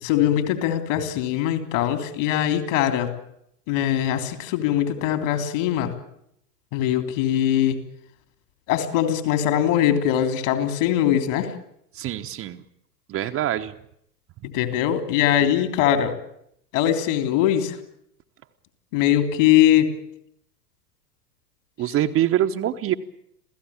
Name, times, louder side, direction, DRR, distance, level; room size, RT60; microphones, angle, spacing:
voice 1, 0.0-3.1 3.7-5.9 6.7-7.8 8.7-11.5 14.5-16.1 16.7-17.8 18.9-19.9, left 11 dB, 50° left, 7 dB, 3.5 m, -21 dB
voice 2, 11.9-12.6 13.1-13.8 15.4-15.5 21.8-22.9, right 12 dB, 30° right, 6 dB, 1.1 m, -24 dB
27.5 x 16.5 x 8.7 m, 0.74 s
figure-of-eight pair, 90°, 48 cm